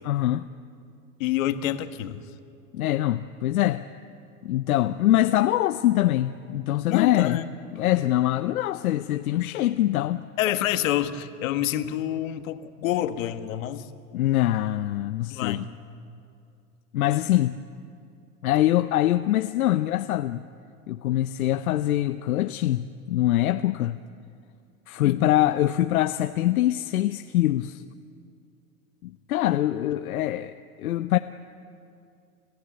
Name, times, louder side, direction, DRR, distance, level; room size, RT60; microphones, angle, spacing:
voice 1, 0.0-0.5 2.7-3.8 4.4-7.4 7.7-10.2 14.1-15.6 16.9-17.6 18.4-20.4 20.9-24.0 24.9-27.8 29.0-31.2, left 14 dB, 85° left, 0.7 m, -24 dB
voice 2, 1.2-2.2 6.9-7.4 10.4-13.9 15.3-15.7 25.0-25.2, left 12 dB, 65° left, 1.5 m, -27 dB
29.0 x 15.0 x 8.7 m
hypercardioid pair, 120°, 42 cm